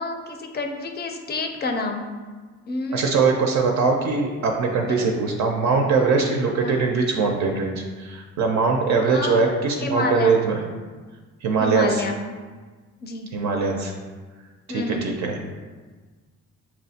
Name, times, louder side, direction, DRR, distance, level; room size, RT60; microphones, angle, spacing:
voice 1, 0.0-2.1 2.7-3.4 4.9-5.1 6.6-6.8 9.1-9.4 9.8-10.3 11.6-12.2 13.0-13.3 14.7-15.1, left 3 dB, 35° left, 4 dB, 0.5 m, -28 dB
voice 2, 2.9-10.6 11.4-12.0 13.3-13.9 14.7-15.4, right 4 dB, 65° right, 1 dB, 0.5 m, -22 dB
5.7 x 2.0 x 2.7 m, 1.4 s
cardioid pair, 90°, 30 cm